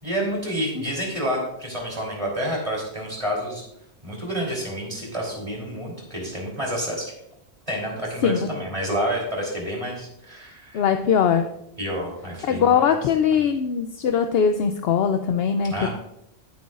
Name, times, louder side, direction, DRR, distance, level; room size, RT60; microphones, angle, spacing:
voice 1, 0.0-3.6 4.0-7.1 7.7-10.8 11.8-13.0 15.7-15.9, equal, 30° right, -2 dB, 3.5 m, -29 dB
voice 2, 10.7-11.5 12.5-15.9, left 7 dB, 70° left, 7 dB, 0.8 m, -21 dB
16.0 x 7.9 x 2.5 m, 0.79 s
omnidirectional pair, 1.1 m